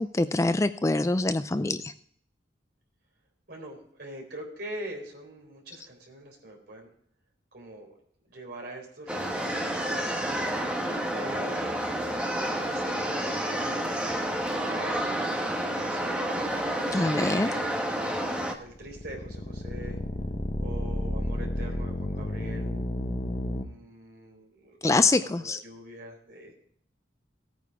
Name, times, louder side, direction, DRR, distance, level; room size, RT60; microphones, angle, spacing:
voice 1, 0.0-1.9 16.9-17.5 24.8-25.6, left 2 dB, 15° left, 12 dB, 0.3 m, -25 dB
voice 2, 3.5-6.9 7.5-8.0 8.3-10.2 10.8-13.9 14.6-16.3 16.9-20.0 20.6-22.8 23.5-26.5, right 1 dB, 55° right, 0 dB, 3.9 m, -44 dB
sound 1, 9.1-18.5, right 1 dB, 5° right, 1.2 m, -29 dB
sound 2, 18.6-23.6, left 1 dB, 40° left, 0.9 m, -31 dB
16.5 x 9.3 x 3.6 m, 0.65 s
head